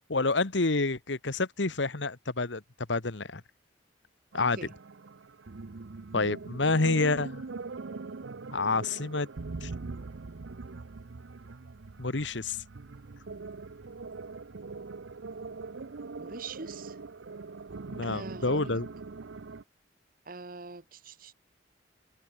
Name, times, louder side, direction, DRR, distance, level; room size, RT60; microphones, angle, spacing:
voice 1, 0.1-2.6 2.9-3.4 4.3-4.6 6.1-7.4 8.5-9.3 9.6-9.7 12.0-12.6 17.9-18.9, left 3 dB, 75° left, 1.4 m, -28 dB
sound 1, 4.3-19.6, right 3 dB, 80° right, 0.7 m, -42 dB
voice 2, 4.4-4.7 16.2-17.0 18.0-18.8 20.2-21.3, right 4 dB, 50° right, 1.2 m, -43 dB
head